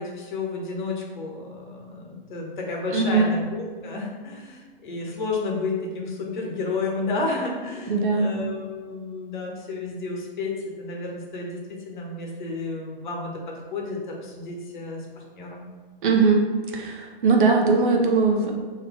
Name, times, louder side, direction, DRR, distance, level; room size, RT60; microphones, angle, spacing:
voice 1, 0.0-13.3 13.7-15.7, left 3 dB, 55° left, -1 dB, 0.9 m, -31 dB
voice 2, 2.9-3.3 7.9-8.3 16.0-18.5, right 4 dB, 60° right, 2 dB, 0.7 m, -20 dB
3.3 x 2.7 x 3.5 m, 1.5 s
figure-of-eight pair, 115°, 29 cm